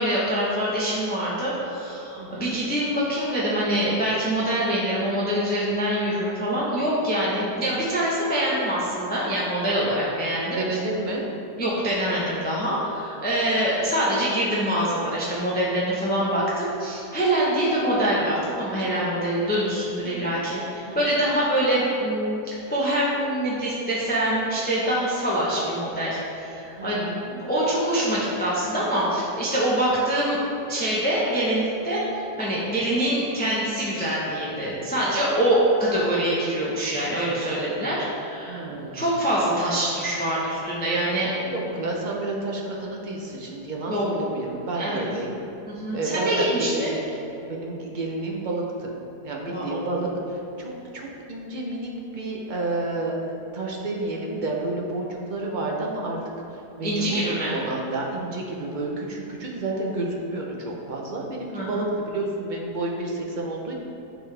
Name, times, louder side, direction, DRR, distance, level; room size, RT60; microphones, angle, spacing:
voice 1, 0.0-10.6 11.6-27.1 27.4-30.4 30.7-38.6 38.9-41.4 43.9-44.0 44.7-45.0 45.7-47.0 49.5-50.1 56.8-57.5 61.5-61.9, right 1 dB, 10° left, -7 dB, 0.7 m, -25 dB
voice 2, 2.2-2.6 7.3-7.7 10.5-11.3 20.0-20.4 20.9-21.1 26.8-27.4 38.5-39.0 41.4-45.4 45.9-47.0 47.4-48.9 49.2-53.3 53.5-56.2 56.5-63.7, right 2 dB, 50° right, -2 dB, 0.5 m, -30 dB
10.0 x 4.0 x 3.3 m, 2.8 s
omnidirectional pair, 1.8 m